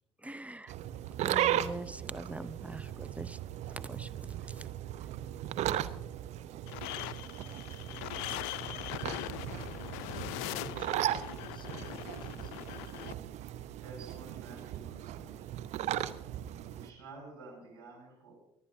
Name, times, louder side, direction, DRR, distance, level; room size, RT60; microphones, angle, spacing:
voice 1, 0.2-0.7 1.2-3.4 3.7-4.7, right 2 dB, 10° right, 12 dB, 0.6 m, -43 dB
sound 1, 0.7-16.9, right 12 dB, 60° right, 0.7 m, -37 dB
sound 2, 6.7-13.1, left 15 dB, 70° left, 0.4 m, -41 dB
voice 2, 10.1-12.7, left 6 dB, 35° left, 13 dB, 0.9 m, -54 dB
voice 3, 13.8-15.6 16.7-18.3, right 3 dB, 85° right, -2 dB, 5.5 m, -51 dB
29.0 x 9.7 x 2.7 m, 0.84 s
hypercardioid pair, 55°, 13 cm